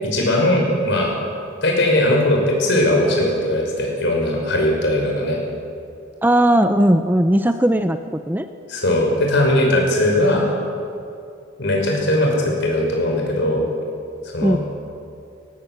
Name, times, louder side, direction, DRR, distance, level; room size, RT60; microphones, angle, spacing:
voice 1, 0.1-1.1 1.6-5.4 8.7-10.5 11.6-13.7 14.2-14.6, left 1 dB, 60° left, 0 dB, 5.8 m, -19 dB
voice 2, 6.2-8.0 8.3-8.5 14.4-14.6, right 1 dB, 10° right, 9 dB, 0.6 m, -17 dB
19.0 x 17.5 x 8.2 m, 2.5 s
head